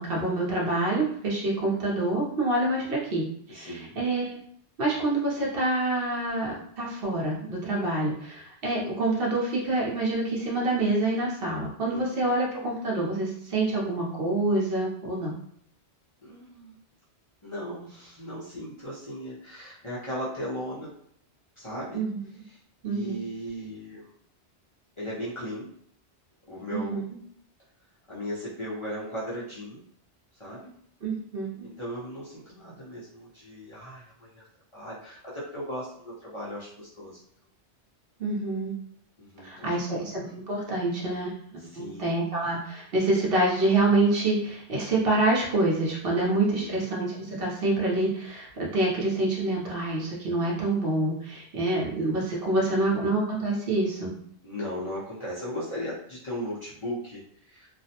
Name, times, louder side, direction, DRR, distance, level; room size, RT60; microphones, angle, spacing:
voice 1, 0.0-4.4 4.8-15.3 21.9-22.2 22.8-23.1 26.7-27.0 31.0-31.7 38.2-38.7 39.4-41.4 41.7-54.1, right 2 dB, 60° right, -4 dB, 0.9 m, -27 dB
voice 2, 3.5-4.0 11.8-12.3 16.2-16.8 17.4-20.9 21.6-22.0 22.4-24.1 25.0-25.7 26.5-27.0 28.1-29.8 30.3-30.7 31.6-34.5 34.7-37.2 39.2-40.1 41.6-42.5 46.2-46.9 52.4-53.0 54.4-57.7, equal, 35° left, -9 dB, 0.6 m, -37 dB
2.4 x 2.0 x 2.7 m, 0.65 s
omnidirectional pair, 1.1 m